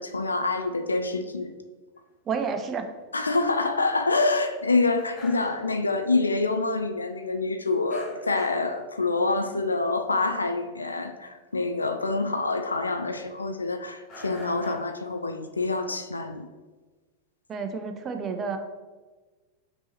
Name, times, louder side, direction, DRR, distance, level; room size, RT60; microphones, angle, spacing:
voice 1, 0.0-1.5 3.1-16.5, left 3 dB, 80° left, 7 dB, 0.3 m, -26 dB
sound 1, 2.3-2.5 3.0-3.1 3.5-3.6 3.9-4.0 4.3-4.4 5.0-6.1 6.4-6.5 7.9-8.7 9.1-9.4 9.8-10.0 10.3-10.5 11.0-11.1 11.5-11.6 12.7-13.4 14.1-14.7, left 1 dB, 35° left, 1.4 m, -45 dB
voice 2, 2.3-2.9 17.5-18.6, right 5 dB, 25° right, 7 dB, 0.5 m, -30 dB
5.2 x 3.1 x 3.0 m, 1.3 s
figure-of-eight pair, 90°, 0 cm